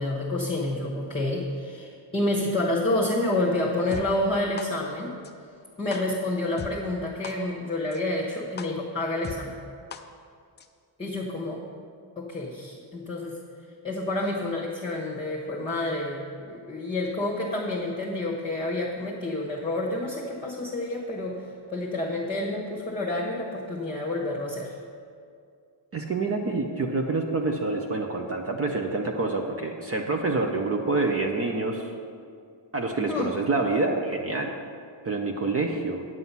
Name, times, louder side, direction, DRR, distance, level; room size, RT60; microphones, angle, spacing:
voice 1, 0.0-5.1 5.8-9.5 11.0-11.6 12.2-13.4 13.8-24.7 33.1-33.3, left 1 dB, 10° left, -5 dB, 1.2 m, -29 dB
sound 1, 3.9-4.0 4.6-4.7 5.2-5.3 5.9-6.0 6.6-6.7 7.2-7.3 7.9-8.0 8.6-8.7 9.2-9.4 9.9-10.0 10.6-10.7, left 6 dB, 25° left, 0.3 m, -37 dB
voice 2, 25.9-31.9 32.7-34.5 35.0-36.1, right 3 dB, 30° right, 3 dB, 0.6 m, -27 dB
9.5 x 7.7 x 5.6 m, 2.3 s
cardioid pair, 155°, 49 cm